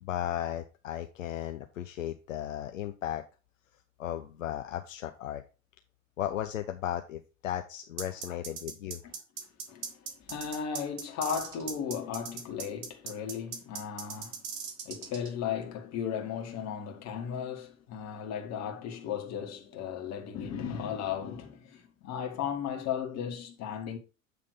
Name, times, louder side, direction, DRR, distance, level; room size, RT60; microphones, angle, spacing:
voice 1, 0.0-3.2 4.0-5.4 6.2-9.0, left 11 dB, 75° left, 0.7 m, -35 dB
sound 1, 8.0-15.3, right 6 dB, 50° right, 1.5 m, -39 dB
voice 2, 9.7-10.0 10.3-14.4 14.9-24.0, left 8 dB, 40° left, 1.8 m, -36 dB
8.0 x 3.4 x 5.0 m
figure-of-eight pair, 75°, 40 cm